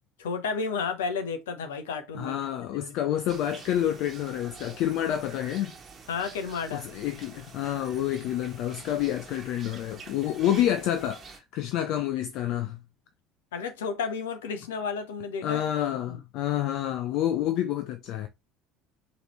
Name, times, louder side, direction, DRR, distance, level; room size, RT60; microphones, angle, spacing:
voice 1, 0.2-2.4 2.7-2.9 6.1-6.9 13.5-15.6 16.0-16.2, left 5 dB, 70° left, 0.8 m, -32 dB
voice 2, 2.1-5.7 6.7-12.8 15.4-18.3, left 11 dB, 55° left, 0.4 m, -28 dB
sound 1, 3.3-11.4, right 5 dB, 35° right, 1.2 m, -47 dB
4.9 x 3.1 x 3.1 m
figure-of-eight pair, 60°, 0 cm